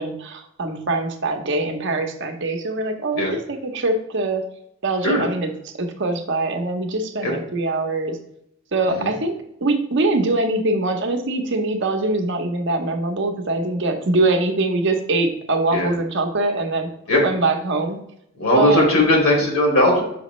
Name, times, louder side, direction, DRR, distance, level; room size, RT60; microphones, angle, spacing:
voice 1, 0.0-3.2 3.5-4.4 4.8-5.5 5.7-8.2 8.7-9.4 9.6-16.9 17.2-18.0 18.5-18.8, right 2 dB, 50° right, 4 dB, 0.8 m, -23 dB
voice 2, 18.4-20.0, left 1 dB, 70° left, -2 dB, 2.4 m, -18 dB
6.1 x 5.0 x 3.1 m, 0.77 s
head